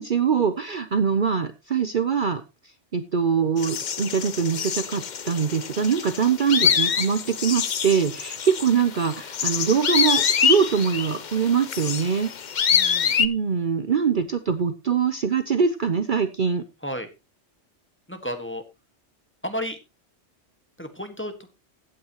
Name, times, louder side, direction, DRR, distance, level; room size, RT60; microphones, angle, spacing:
voice 1, 0.0-2.4 2.9-12.3 13.2-16.6, right 6 dB, 50° right, 10 dB, 0.9 m, -23 dB
sound 1, 3.6-13.3, left 7 dB, 45° left, 0.7 m, -25 dB
voice 2, 12.7-13.2 16.8-17.1 18.1-18.6 19.4-19.8 20.8-21.5, equal, 10° left, 6 dB, 1.5 m, -32 dB
15.5 x 8.8 x 3.0 m, 0.26 s
omnidirectional pair, 1.2 m